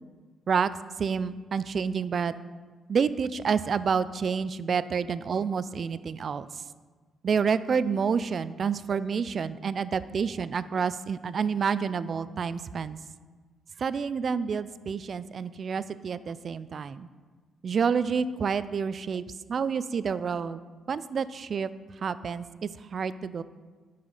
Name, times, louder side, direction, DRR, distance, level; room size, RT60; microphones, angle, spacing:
voice 1, 1.0-2.3 2.9-6.6 7.2-13.0 13.8-17.1 17.6-19.2 19.5-20.6 20.9-21.7 22.0-23.4, right 6 dB, 55° right, 15 dB, 0.3 m, -28 dB
9.5 x 5.6 x 4.0 m, 1.4 s
supercardioid pair, 60°, 0 cm